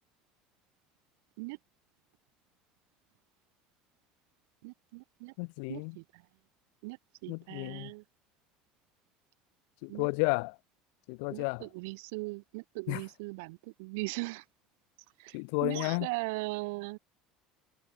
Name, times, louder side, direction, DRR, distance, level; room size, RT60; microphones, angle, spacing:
voice 1, 4.6-5.3 5.7-6.0 6.8-7.0 7.2-8.0 9.9-10.1 11.3-14.4 15.2-15.4 15.6-17.0, right 27 dB, 85° right, 1.4 m, -39 dB
voice 2, 5.4-6.0 7.3-7.9 9.8-10.5 11.1-11.7 12.9-13.0 15.3-16.1, left 38 dB, 80° left, 0.8 m, -32 dB
cardioid pair, 140°, 0 cm